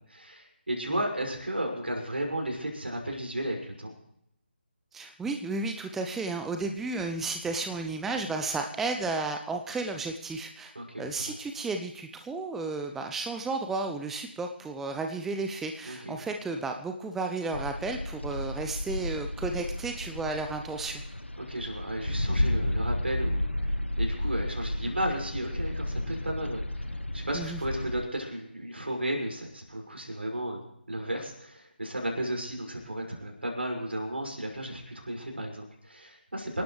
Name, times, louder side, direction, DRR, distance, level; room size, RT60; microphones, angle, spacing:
voice 1, 0.1-3.9 10.7-11.4 15.8-16.2 21.5-26.8 27.1-30.6 30.9-36.6, right 1 dB, 70° right, 1 dB, 6.0 m, -34 dB
voice 2, 4.9-10.7 11.0-21.0 27.3-27.6, right 3 dB, 5° right, 5 dB, 0.5 m, -33 dB
sound 1, 17.5-28.1, left 1 dB, 85° left, 0.8 m, -32 dB
27.0 x 12.0 x 3.3 m, 0.74 s
figure-of-eight pair, 150°, 6 cm